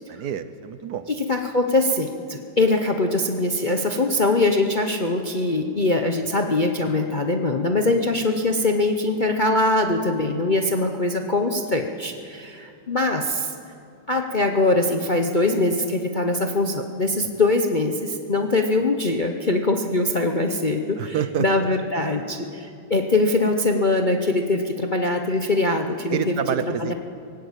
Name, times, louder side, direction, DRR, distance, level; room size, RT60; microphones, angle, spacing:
voice 1, 0.1-1.1 17.2-17.3 21.0-21.5 26.1-26.9, right 8 dB, 65° right, 12 dB, 1.2 m, -27 dB
voice 2, 1.1-13.5 14.1-26.4 26.7-26.9, left 2 dB, 40° left, 4 dB, 0.7 m, -22 dB
19.0 x 18.0 x 8.2 m, 2.5 s
omnidirectional pair, 2.1 m